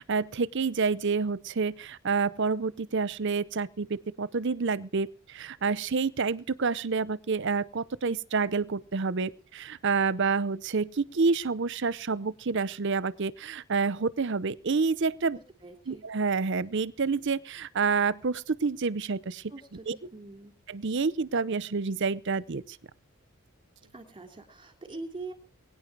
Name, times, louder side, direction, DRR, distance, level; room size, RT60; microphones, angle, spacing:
voice 1, 0.0-15.4 15.9-19.4 19.9-20.0 20.7-22.8, right 4 dB, 55° right, 0.7 m, -28 dB
voice 2, 15.3-16.0 19.5-20.5 23.9-25.3, right 3 dB, 20° right, 3.0 m, -43 dB
22.5 x 9.8 x 4.7 m
head